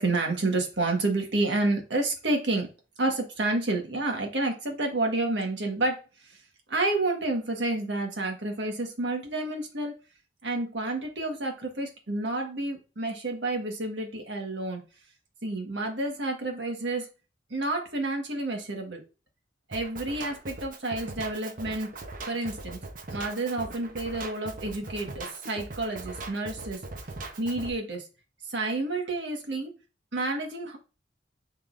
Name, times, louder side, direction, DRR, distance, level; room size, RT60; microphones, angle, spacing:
voice 1, 0.0-2.7 3.0-6.0 6.7-10.0 10.4-14.8 15.4-17.1 17.5-19.0 19.7-21.9 22.3-22.8 23.1-26.8 27.4-28.1 28.5-29.7 30.1-30.8, right 2 dB, 75° right, 2 dB, 1.6 m, -29 dB
Drum kit, 19.7-27.7, right 2 dB, 50° right, 1.0 m, -40 dB
10.5 x 3.7 x 2.6 m, 0.32 s
head